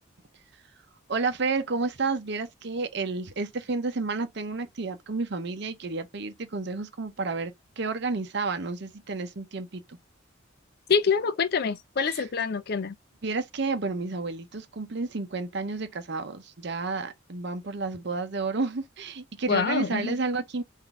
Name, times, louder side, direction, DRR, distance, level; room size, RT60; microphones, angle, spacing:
voice 1, 1.1-10.0 12.0-12.3 13.2-20.6, right 3 dB, 55° right, 0.7 m, -31 dB
voice 2, 10.9-13.0 19.5-20.1, left 5 dB, 50° left, 0.4 m, -26 dB
3.9 x 2.6 x 3.6 m
head